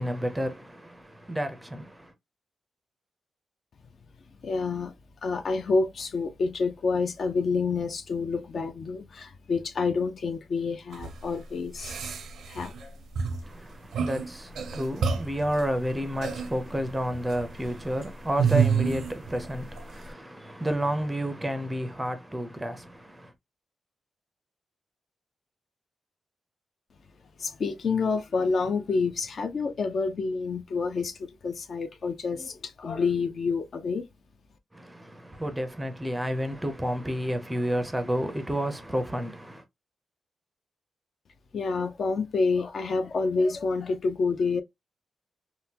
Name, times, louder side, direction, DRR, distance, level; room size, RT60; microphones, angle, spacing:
voice 1, 0.0-2.1 13.4-23.3 34.7-39.6, equal, 10° right, 0.5 m, -31 dB
voice 2, 4.4-4.9 5.2-12.0 12.5-13.0 27.4-34.1 41.5-44.6, left 4 dB, 45° left, 0.4 m, -28 dB
sound 1, 10.9-11.1 11.8-12.8 13.1-13.4 13.9-14.3 14.6-15.5 16.2-16.5 17.1-17.5 18.4-19.5 19.8-19.9, right 6 dB, 90° right, 0.6 m, -27 dB
3.6 x 2.1 x 2.8 m
wide cardioid pair, 175°, 0 cm